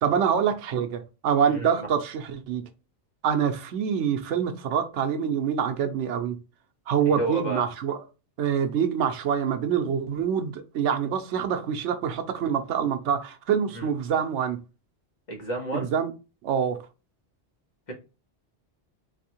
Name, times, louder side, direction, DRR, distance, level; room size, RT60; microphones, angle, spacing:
voice 1, 0.0-2.7 3.2-6.4 6.9-8.0 8.4-14.6 15.7-16.1 16.4-16.8, right 8 dB, 90° right, 0.9 m, -26 dB
voice 2, 1.5-1.9 7.1-7.6 13.7-13.9 15.3-15.9 17.9-18.0, right 1 dB, 40° left, 1.2 m, -31 dB
4.1 x 2.6 x 2.8 m
omnidirectional pair, 1.2 m